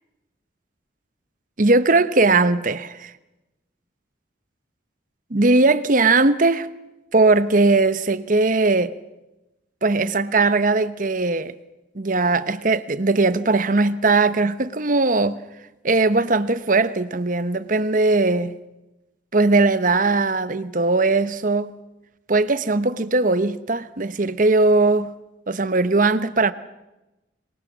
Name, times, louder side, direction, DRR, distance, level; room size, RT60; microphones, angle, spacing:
voice 1, 1.6-3.1 5.3-6.7 7.1-8.9 9.8-11.5 11.9-15.4 15.8-18.5 19.3-21.7 22.3-25.1 25.5-26.5, right 3 dB, 45° right, 1.0 m, -19 dB
27.0 x 23.0 x 7.4 m
head